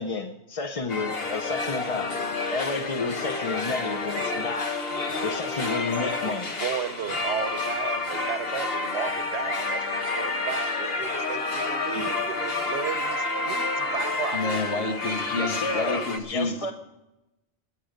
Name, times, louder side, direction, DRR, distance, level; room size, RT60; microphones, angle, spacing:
voice 1, 0.0-2.2 2.5-4.8 5.2-6.5 11.9-12.1 15.4-16.7, left 3 dB, 35° left, 5 dB, 0.7 m, -31 dB
sound 1, 0.9-16.2, left 3 dB, 60° left, 1.6 m, -29 dB
voice 2, 6.2-14.4, right 8 dB, 80° right, 12 dB, 1.1 m, -34 dB
voice 3, 14.3-16.7, left 3 dB, 85° left, 6 dB, 1.6 m, -30 dB
20.5 x 8.9 x 5.1 m, 0.96 s
omnidirectional pair, 1.1 m